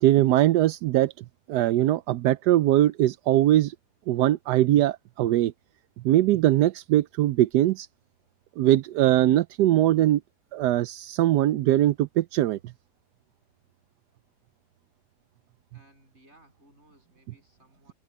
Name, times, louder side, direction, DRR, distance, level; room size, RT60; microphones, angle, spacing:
voice 1, 0.0-3.7 4.1-5.5 6.0-7.9 8.6-10.2 10.5-12.6, right 13 dB, 85° right, 1.2 m, -21 dB
voice 2, 15.7-17.9, right 1 dB, 40° right, 8.5 m, -59 dB
omnidirectional pair, 1.7 m